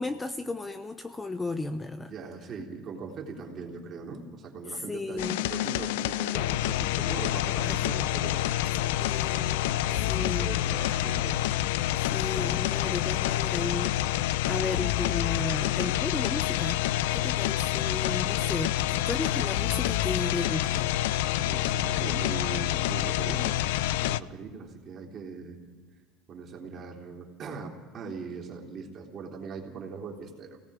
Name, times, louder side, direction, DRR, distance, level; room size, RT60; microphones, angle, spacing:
voice 1, 0.0-2.1 4.7-5.4 7.6-8.0 9.0-9.7 10.0-10.5 11.9-16.8 17.1-20.9, left 3 dB, 10° left, 9 dB, 0.7 m, -35 dB
voice 2, 2.1-8.5 8.8-9.1 9.5-11.4 21.4-25.6 26.3-30.6, right 4 dB, 35° right, 0 dB, 3.4 m, -40 dB
sound 1, 5.2-24.2, left 13 dB, 85° left, 0.5 m, -27 dB
28.5 x 18.0 x 5.0 m, 1.4 s
cardioid pair, 150°, 0 cm